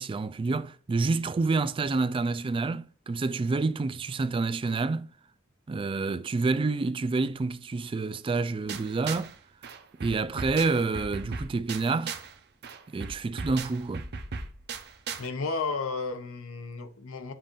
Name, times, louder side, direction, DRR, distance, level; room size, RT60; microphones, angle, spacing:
voice 1, 0.0-5.1 5.7-9.3 10.0-12.2 12.9-14.1, right 3 dB, 25° right, 0.3 m, -28 dB
sound 1, 8.7-9.4 9.6-12.4 12.6-15.3, right 4 dB, 55° right, 0.7 m, -38 dB
voice 2, 15.2-17.3, left 4 dB, 85° left, 0.8 m, -33 dB
7.5 x 2.5 x 5.2 m
head